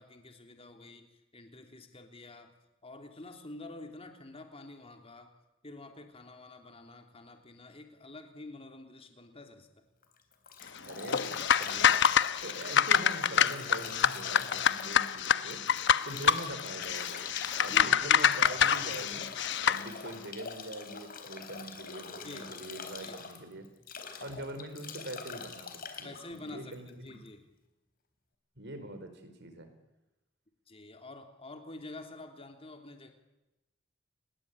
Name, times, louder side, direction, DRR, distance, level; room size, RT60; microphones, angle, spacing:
voice 1, 0.0-2.5 2.8-5.3 5.6-9.9 16.0-16.3 17.6-18.8 22.2-22.5 23.0-23.2 26.0-27.5 30.7-33.1, left 2 dB, 30° left, 5 dB, 3.1 m, -48 dB
Bathtub (filling or washing) / Drip / Trickle dribble, 10.0-27.3, left 5 dB, 50° left, 4.0 m, -45 dB
voice 2, 10.8-12.0 12.4-15.6 16.0-17.2 17.6-19.3 19.7-23.7 24.2-27.2 28.6-29.7, right 1 dB, 60° right, 9 dB, 4.8 m, -43 dB
sound 1, 11.1-19.8, left 8 dB, 65° left, 1.0 m, -27 dB
30.0 x 21.5 x 8.8 m, 1.0 s
head